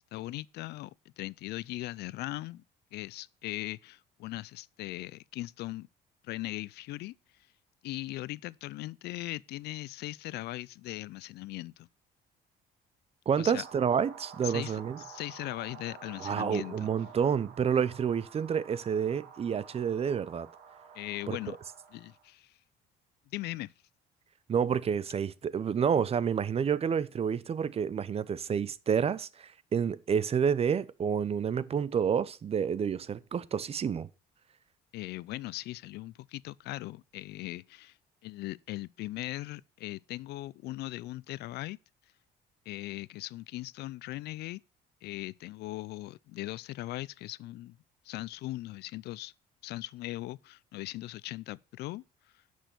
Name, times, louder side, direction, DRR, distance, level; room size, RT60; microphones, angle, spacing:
voice 1, 0.1-2.6 2.9-5.9 6.2-7.2 7.8-11.9 13.4-13.6 14.4-16.9 20.9-21.6 21.9-22.6 23.3-23.7 34.9-38.0 38.2-41.8 42.7-44.6 45.0-47.8 48.0-49.3 49.6-52.0, left 17 dB, 75° left, 0.5 m, -39 dB
voice 2, 13.3-15.0 16.2-20.5 21.3-21.4 24.5-34.1, right 7 dB, 35° right, 0.7 m, -29 dB
sound 1, 13.6-22.3, right 6 dB, 70° right, 2.4 m, -50 dB
10.0 x 6.5 x 6.7 m
cardioid pair, 110°, 17 cm